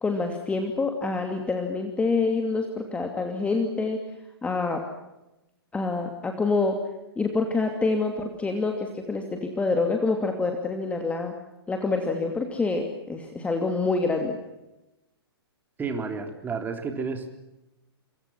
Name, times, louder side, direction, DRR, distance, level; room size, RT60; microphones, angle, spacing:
voice 1, 0.0-4.0 4.4-4.8 5.7-6.8 7.2-11.3 11.7-14.4, left 3 dB, 10° left, 4 dB, 2.7 m, -26 dB
voice 2, 15.8-17.3, right 4 dB, 15° right, 6 dB, 3.7 m, -31 dB
27.5 x 25.0 x 6.0 m, 0.94 s
figure-of-eight pair, 120°, 13 cm